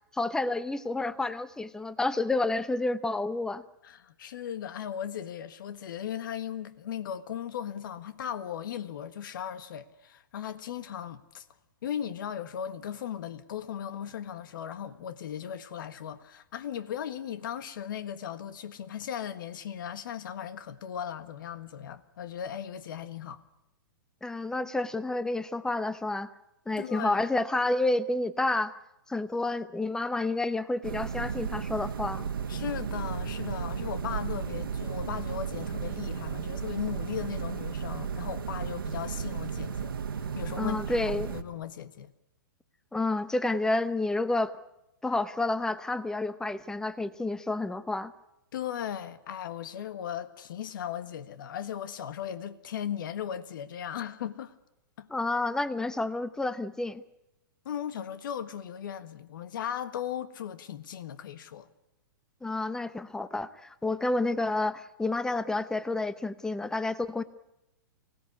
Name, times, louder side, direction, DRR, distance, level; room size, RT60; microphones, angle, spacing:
voice 1, 0.1-3.6 24.2-26.3 26.7-28.8 29.1-32.3 40.6-41.4 42.9-44.5 45.0-48.1 55.1-57.0 62.4-67.2, left 2 dB, 5° left, 0.8 m, -29 dB
voice 2, 3.8-11.4 11.8-23.4 26.8-27.2 32.5-42.1 48.5-54.5 55.0-55.1 57.6-61.7, left 9 dB, 65° left, 1.5 m, -37 dB
sound 1, 30.8-41.4, right 6 dB, 85° right, 1.6 m, -34 dB
24.5 x 17.5 x 9.8 m
hypercardioid pair, 130°, 12 cm